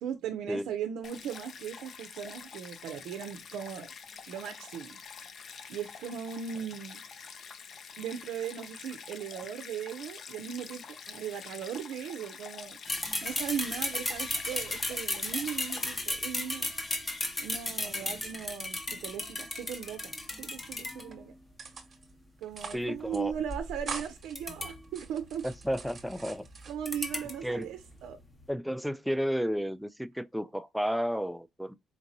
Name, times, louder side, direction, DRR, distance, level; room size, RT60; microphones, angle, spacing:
voice 1, 0.0-3.9 4.3-5.0 5.7-7.0 8.0-12.8 13.2-16.7 17.4-21.3 22.4-25.5 26.7-28.2, right 8 dB, 85° right, 0.4 m, -38 dB
Stream, 1.0-16.0, left 6 dB, 60° left, 0.5 m, -46 dB
sound 1, 12.9-21.3 22.5-28.5, left 2 dB, 25° left, 0.9 m, -36 dB
voice 2, 17.8-18.2 22.7-23.3 25.4-26.5 27.4-27.7 28.5-31.7, equal, ahead, 0.3 m, -32 dB
sound 2, 18.3-19.3 19.5-20.5 20.8-21.2 21.6-22.1 22.4-22.9 23.1-23.2 23.5-24.3 24.8-27.0 27.4-28.1, right 5 dB, 40° right, 1.0 m, -44 dB
4.4 x 2.8 x 2.6 m
cardioid pair, 90°, 0 cm